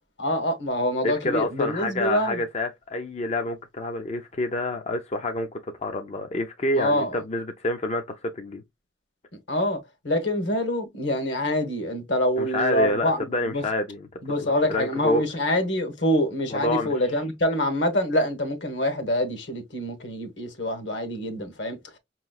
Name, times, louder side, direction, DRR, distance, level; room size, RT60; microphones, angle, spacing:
voice 1, 0.2-2.4 6.8-7.1 9.5-13.6 14.2-21.8, left 1 dB, 65° left, 1.2 m, -26 dB
voice 2, 1.0-8.6 12.4-14.1 14.4-15.2 16.5-16.9, left 2 dB, 35° left, 0.5 m, -28 dB
5.5 x 3.0 x 2.2 m
head